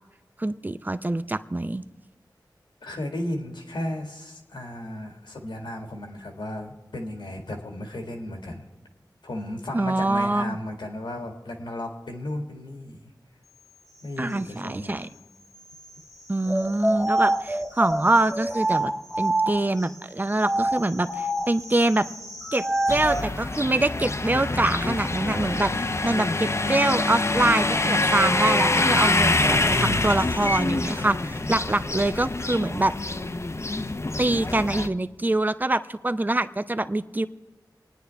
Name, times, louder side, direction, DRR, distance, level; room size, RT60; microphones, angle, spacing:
voice 1, 0.4-1.8 9.7-10.6 14.2-15.1 16.3-22.0 22.5-32.9 34.2-37.3, right 2 dB, 25° right, 11 dB, 0.6 m, -25 dB
voice 2, 2.8-8.6 9.2-13.0 14.0-15.0, left 1 dB, 85° left, 2 dB, 1.9 m, -34 dB
sound 1, 16.4-19.8 20.4-23.3, right 1 dB, ahead, 1.1 m, -26 dB
sound 2, 22.9-34.9, left 2 dB, 35° left, 0.6 m, -25 dB
27.0 x 9.6 x 3.4 m, 1.2 s
wide cardioid pair, 50°, 8 cm